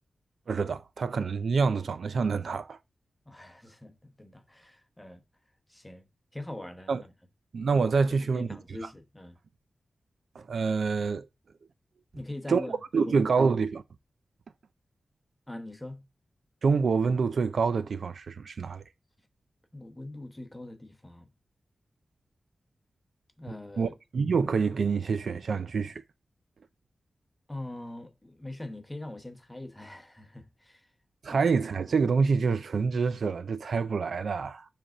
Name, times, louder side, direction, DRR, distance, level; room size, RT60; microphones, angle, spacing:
voice 1, 0.5-2.8 6.9-7.0 7.5-8.5 10.4-11.3 12.5-13.8 16.6-18.8 23.8-26.0 31.2-34.7, right 5 dB, 70° right, 0.5 m, -27 dB
voice 2, 3.3-5.2 5.7-6.1 6.3-7.1 8.2-9.4 12.1-13.3 15.5-16.0 19.7-21.3 23.4-23.9 27.5-30.9 31.3-31.5, left 1 dB, 10° left, 0.9 m, -42 dB
7.6 x 3.5 x 6.0 m
wide cardioid pair, 165°, 0 cm